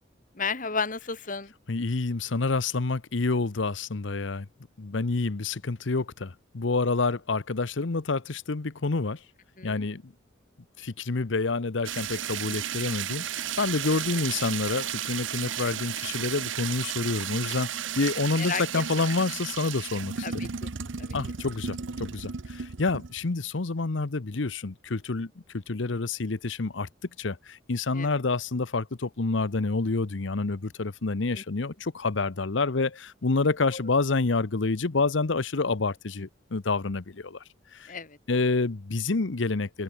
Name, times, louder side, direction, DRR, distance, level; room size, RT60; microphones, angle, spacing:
voice 1, 0.3-1.5 9.6-9.9 18.3-18.6 20.2-20.7 21.0-21.2 27.9-28.1 31.3-31.4 33.7-33.8 37.9-38.5, left 5 dB, 45° left, 2.7 m, -33 dB
voice 2, 1.7-4.5 4.8-9.2 9.6-10.1 10.8-20.3 21.1-26.9 27.2-37.4 37.7-37.9 38.3-39.8, left 3 dB, 70° left, 0.9 m, -28 dB
sound 1, 11.8-23.2, right 9 dB, 75° right, 0.9 m, -34 dB
open air
head